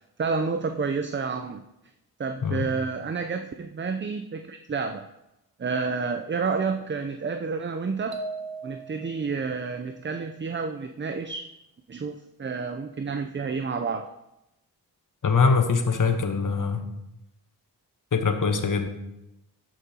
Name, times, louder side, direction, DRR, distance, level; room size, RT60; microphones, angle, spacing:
voice 1, 0.2-1.6 2.2-5.1 5.6-8.2 8.6-11.4 11.9-14.1, right 5 dB, 30° right, 7 dB, 0.5 m, -30 dB
sound 1, 8.1-9.3, right 3 dB, 65° right, 1.2 m, -37 dB
voice 2, 15.2-16.8 18.1-18.9, left 5 dB, 50° left, 6 dB, 1.1 m, -23 dB
12.5 x 5.3 x 2.9 m, 0.88 s
cardioid pair, 45°, 41 cm